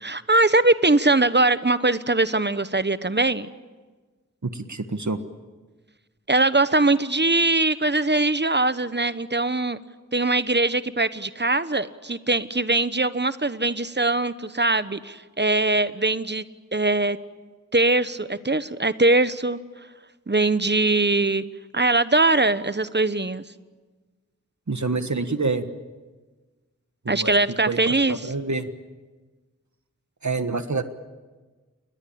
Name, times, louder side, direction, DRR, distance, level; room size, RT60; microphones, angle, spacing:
voice 1, 0.0-3.5 6.3-9.8 10.1-16.4 16.7-17.2 17.7-19.6 20.3-21.4 21.7-23.4 27.1-28.3, right 2 dB, 35° right, 13 dB, 1.1 m, -21 dB
voice 2, 4.4-5.2 24.7-25.7 27.0-27.3 27.7-28.7 30.2-30.8, right 3 dB, 60° right, 9 dB, 1.5 m, -27 dB
29.0 x 22.0 x 8.7 m, 1.3 s
wide cardioid pair, 50°, 32 cm